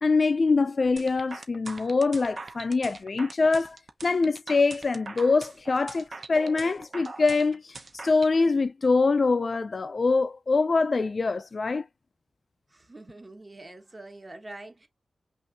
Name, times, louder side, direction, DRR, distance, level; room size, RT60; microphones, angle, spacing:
voice 1, 0.0-3.8 4.0-7.7 8.0-11.8, left 4 dB, 45° left, 0.3 m, -24 dB
sound 1, 1.0-8.3, right 3 dB, 45° right, 0.7 m, -42 dB
voice 2, 12.7-14.9, right 2 dB, 25° right, 1.2 m, -45 dB
5.8 x 2.6 x 2.8 m
wide cardioid pair, 115°, 0 cm